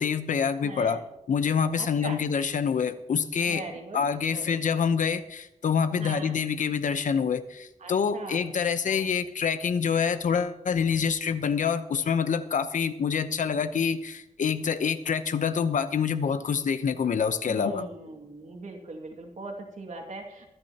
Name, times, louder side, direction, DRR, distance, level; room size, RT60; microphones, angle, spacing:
voice 1, 0.0-3.6 3.9-17.9, left 6 dB, 75° left, 11 dB, 0.9 m, -26 dB
voice 2, 0.6-1.0 1.8-2.2 3.4-4.1 4.3-4.5 4.7-4.8 6.0-6.4 7.8-8.5 8.8-9.0 17.5-20.5, right 3 dB, 65° right, 2 dB, 2.2 m, -40 dB
23.5 x 9.8 x 2.9 m, 0.85 s
wide cardioid pair, 160°, 13 cm